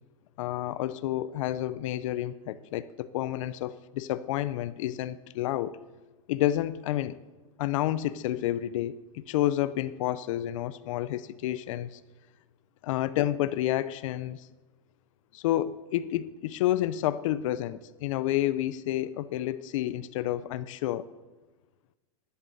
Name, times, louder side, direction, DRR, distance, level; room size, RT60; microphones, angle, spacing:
voice 1, 0.4-5.8 6.3-7.2 7.6-12.0 12.8-14.5 15.3-21.1, left 13 dB, 60° left, 0.5 m, -30 dB
11.5 x 8.0 x 7.6 m
supercardioid pair, 160°, 18 cm